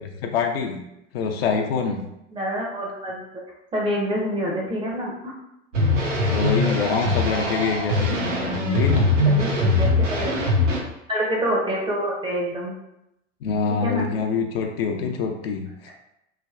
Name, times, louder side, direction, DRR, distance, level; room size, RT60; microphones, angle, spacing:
voice 1, 0.0-0.8 1.1-2.0 6.1-9.1 13.4-15.9, left 5 dB, 55° left, 3 dB, 0.4 m, -25 dB
voice 2, 2.3-3.2 3.7-5.3 9.2-10.3 11.1-12.7 13.7-14.1, equal, 15° right, -2 dB, 0.5 m, -26 dB
sound 1, 5.7-10.8, left 1 dB, 80° right, 0.7 m, -22 dB
3.3 x 2.2 x 2.3 m, 0.85 s
figure-of-eight pair, 80°, 37 cm